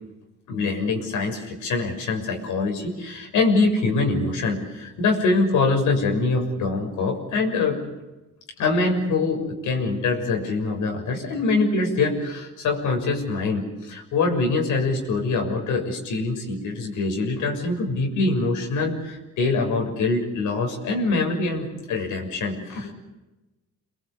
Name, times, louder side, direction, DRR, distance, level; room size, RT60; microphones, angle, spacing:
voice 1, 0.5-7.8 8.6-22.9, left 3 dB, 80° left, 2 dB, 6.7 m, -24 dB
27.5 x 22.0 x 8.3 m, 1.0 s
cardioid pair, 90°, 30 cm